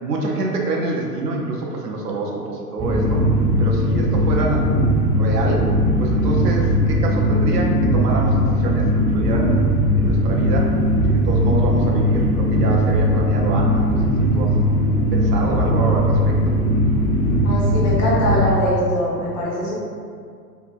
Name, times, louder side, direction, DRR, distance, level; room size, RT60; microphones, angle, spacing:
voice 1, 0.0-3.2 3.6-4.7 5.2-5.6 6.0-9.6 10.0-10.7 11.1-14.0 14.3-14.5 15.1-16.4, right 3 dB, 80° right, -1 dB, 0.6 m, -26 dB
sound 1, 2.8-18.5, equal, 15° right, 0.5 m, -19 dB
voice 2, 17.4-19.8, left 1 dB, 45° left, -7 dB, 1.0 m, -22 dB
2.7 x 2.1 x 2.4 m, 2.2 s
figure-of-eight pair, 95°, 48 cm